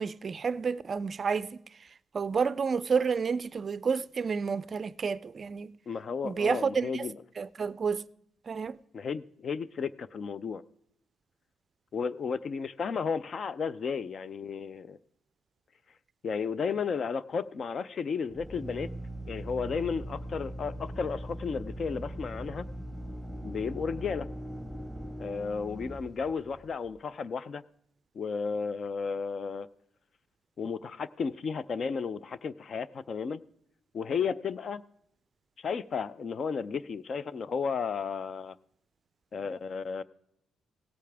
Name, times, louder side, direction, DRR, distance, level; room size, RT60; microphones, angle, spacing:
voice 1, 0.0-1.6 2.1-5.7 6.2-7.1 7.4-8.0 8.5-8.8, right 5 dB, 40° right, 0.4 m, -30 dB
voice 2, 5.9-7.1 8.9-10.6 11.9-15.0 16.2-18.9 19.3-22.7 23.4-24.3 25.2-27.6 28.1-29.7 30.6-33.4 33.9-34.8 35.6-38.6 39.3-40.0, left 5 dB, 50° left, 0.5 m, -33 dB
Drill, 18.2-26.9, right 1 dB, 5° left, 1.9 m, -40 dB
17.5 x 8.4 x 3.4 m
cardioid pair, 90°, 0 cm